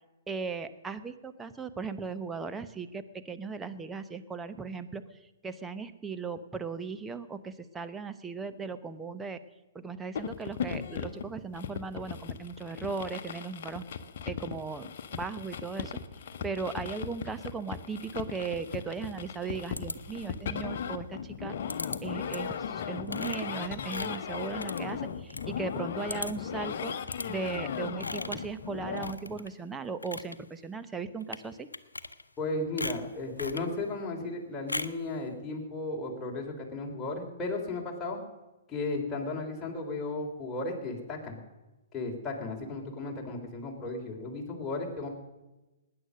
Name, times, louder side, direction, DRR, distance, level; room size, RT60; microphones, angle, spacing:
voice 1, 0.3-5.0 5.4-9.4 9.7-13.8 14.3-15.9 16.4-21.6 22.0-26.9 27.3-31.7, right 5 dB, 10° right, 9 dB, 0.9 m, -37 dB
sound 1, 10.2-29.1, left 7 dB, 55° left, 1.0 m, -37 dB
sound 2, 19.8-20.5 21.7-22.0 22.3-22.6 23.1-25.5 25.8-25.9 26.1-26.5 27.1-27.3 28.0-28.5 29.0-29.5 29.9-30.4 31.2-31.4 31.7-32.4 32.8-33.7 34.7-35.0, left 2 dB, 90° left, 0.7 m, -38 dB
voice 2, 32.4-38.2 38.7-41.4 41.9-45.1, left 2 dB, 15° left, -1 dB, 3.5 m, -35 dB
19.0 x 9.7 x 6.6 m, 1.1 s
figure-of-eight pair, 120°, 0 cm